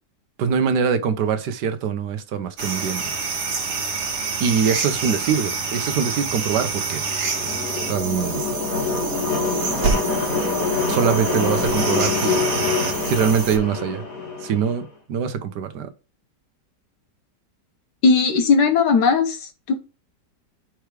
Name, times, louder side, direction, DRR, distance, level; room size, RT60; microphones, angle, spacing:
voice 1, 0.4-3.1 4.4-7.0 7.9-8.4 10.9-12.5 13.0-14.0 14.4-15.9, right 7 dB, 75° right, 1.3 m, -23 dB
sound 1, 2.6-13.6, right 4 dB, 45° right, 1.3 m, -27 dB
sound 2, 6.9-14.8, left 3 dB, 50° left, 2.1 m, -25 dB
voice 2, 18.0-19.8, left 4 dB, 75° left, 1.7 m, -18 dB
4.8 x 4.6 x 4.7 m
omnidirectional pair, 1.9 m